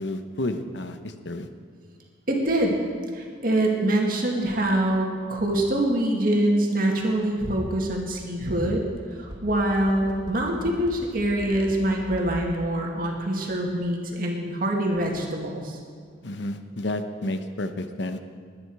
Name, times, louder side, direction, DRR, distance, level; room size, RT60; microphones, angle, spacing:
voice 1, 0.0-1.5 16.2-18.2, left 1 dB, 75° left, 8 dB, 0.9 m, -31 dB
voice 2, 2.3-2.7 3.1-8.8 9.1-15.8, right 1 dB, 50° right, 0 dB, 2.1 m, -24 dB
sound 1, 9.0-12.4 12.7-12.8, equal, 25° right, 1.9 m, -40 dB
21.5 x 9.9 x 4.8 m, 2.1 s
head